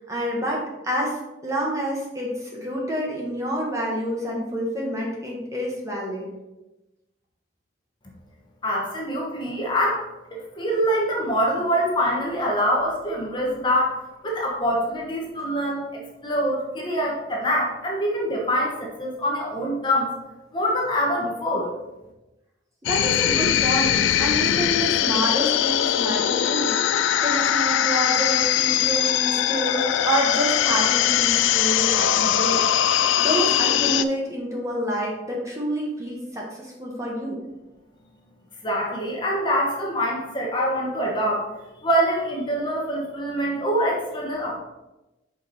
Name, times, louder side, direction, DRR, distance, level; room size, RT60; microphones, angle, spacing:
voice 1, 0.0-6.3 22.9-32.6 32.9-37.4, equal, 15° right, -3 dB, 1.1 m, -28 dB
voice 2, 8.6-10.0 10.3-15.8 16.2-20.1 20.5-21.7 38.6-41.5 41.8-44.6, equal, 25° left, -2 dB, 1.0 m, -24 dB
sound 1, 22.9-34.1, left 10 dB, 80° left, 0.3 m, -21 dB
5.2 x 4.5 x 4.0 m, 1.0 s
head